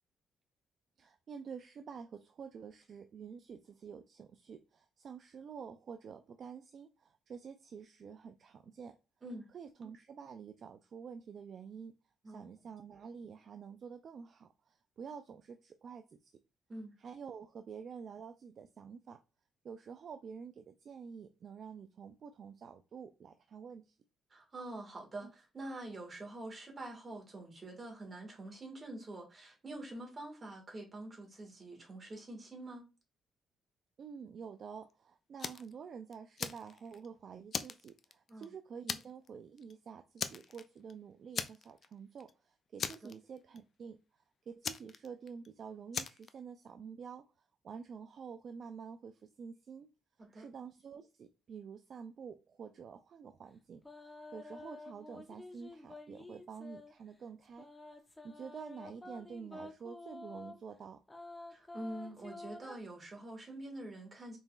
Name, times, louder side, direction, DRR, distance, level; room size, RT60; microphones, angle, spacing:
voice 1, 1.0-9.0 9.5-11.9 12.3-16.1 17.0-19.2 19.6-24.0 25.2-25.3 34.0-44.0 44.5-47.3 47.6-49.9 50.3-53.8 54.3-57.7 58.2-61.0, right 6 dB, 55° right, 0.4 m, -48 dB
voice 2, 24.3-32.9 38.3-38.5 50.2-50.4 61.5-64.4, right 1 dB, 35° right, 1.8 m, -46 dB
Fire, 35.4-35.7 36.1-37.1 37.5-38.4 38.9-39.3 39.6-39.7 40.2-40.9 41.3-41.9 42.2-42.3 42.8-43.6 44.6-45.5 45.9-46.3, left 6 dB, 50° left, 0.4 m, -39 dB
sound 1, 53.8-56.9 57.6-60.6 61.1-62.8, left 2 dB, 15° left, 0.8 m, -50 dB
3.9 x 3.8 x 2.4 m
cardioid pair, 90°, 0 cm